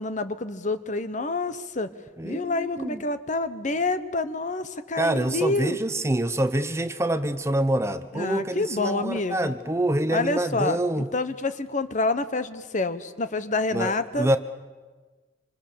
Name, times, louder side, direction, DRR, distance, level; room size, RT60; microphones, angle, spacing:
voice 1, 0.0-1.9 2.2-5.8 8.1-9.5 10.1-14.3, left 2 dB, 45° left, 12 dB, 1.1 m, -28 dB
voice 2, 2.2-3.0 5.0-11.1 13.7-14.4, right 1 dB, 15° right, 11 dB, 0.8 m, -26 dB
26.0 x 26.0 x 6.9 m, 1.3 s
head